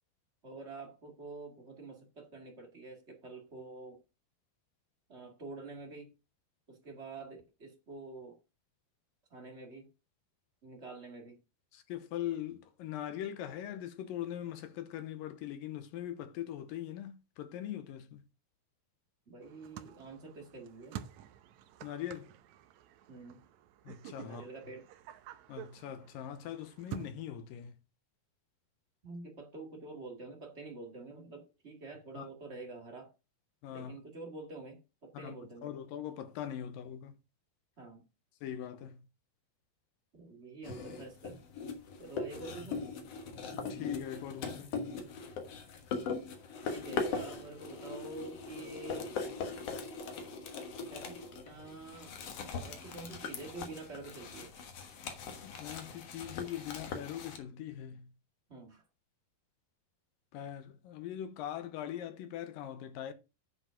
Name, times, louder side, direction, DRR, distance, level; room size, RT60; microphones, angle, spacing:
voice 1, 0.4-4.0 5.1-6.1 6.7-8.4 9.3-9.9 10.6-11.4 19.3-20.9 23.1-23.5 24.2-24.9 29.0-33.1 33.7-35.7 37.8-38.1 40.1-41.4 42.0-42.9 46.6-49.1 50.9-54.5 58.5-58.8, right 3 dB, 30° right, 1.3 m, -47 dB
voice 2, 11.7-18.2 21.8-22.3 23.8-24.5 25.5-27.8 32.1-32.3 33.6-33.9 35.1-35.4 35.6-37.2 38.4-39.0 43.7-44.7 55.4-58.1 60.3-63.1, left 11 dB, 75° left, 2.5 m, -41 dB
sound 1, 19.4-27.1, right 10 dB, 90° right, 1.6 m, -49 dB
sound 2, 40.6-57.4, left 4 dB, 55° left, 1.9 m, -40 dB
9.9 x 5.1 x 5.7 m
omnidirectional pair, 4.3 m